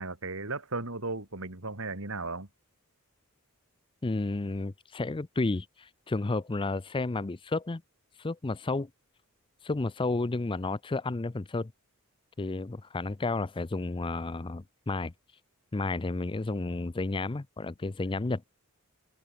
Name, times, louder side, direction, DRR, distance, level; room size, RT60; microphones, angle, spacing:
voice 1, 0.0-2.5, right 3 dB, 65° right, 3.7 m, -35 dB
voice 2, 4.0-7.8 8.2-8.9 9.6-11.7 12.4-15.1 15.7-18.4, left 3 dB, 20° left, 0.5 m, -32 dB
head